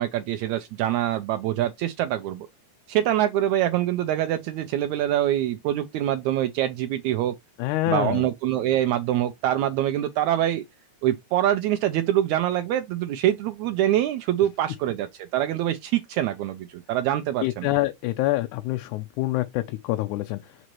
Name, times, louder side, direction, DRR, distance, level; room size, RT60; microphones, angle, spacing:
voice 1, 0.0-2.5 2.9-7.4 7.9-10.6 11.0-17.7, right 12 dB, 80° right, 1.8 m, -25 dB
voice 2, 7.6-8.3 17.4-20.4, left 16 dB, 85° left, 2.1 m, -26 dB
6.3 x 5.1 x 3.0 m
omnidirectional pair, 3.5 m